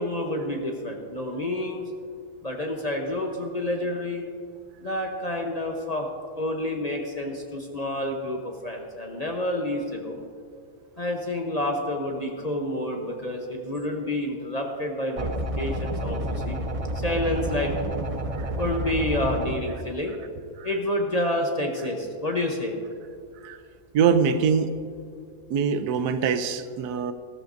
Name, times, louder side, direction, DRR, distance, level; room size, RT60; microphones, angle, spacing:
voice 1, 0.0-1.9 2.4-4.2 4.8-6.1 6.4-10.2 11.0-16.6 16.9-17.7 18.5-20.2 20.6-22.8, left 1 dB, 35° left, 1 dB, 0.7 m, -29 dB
sound 1, 15.2-19.6, equal, 45° right, 0.4 m, -29 dB
voice 2, 23.9-24.7 25.5-27.1, right 6 dB, 85° right, 10 dB, 1.2 m, -23 dB
14.5 x 13.5 x 2.6 m, 2.3 s
omnidirectional pair, 1.6 m